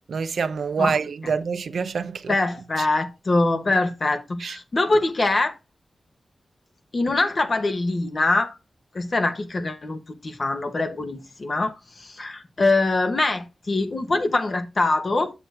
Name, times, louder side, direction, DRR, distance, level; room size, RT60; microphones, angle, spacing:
voice 1, 0.1-2.4 2.8-2.9 4.4-4.6, right 5 dB, 75° right, 0.6 m, -26 dB
voice 2, 2.3-5.6 6.9-8.6 8.9-15.3, left 2 dB, 40° left, 1.2 m, -23 dB
7.8 x 7.1 x 3.4 m
wide cardioid pair, 175°, 0 cm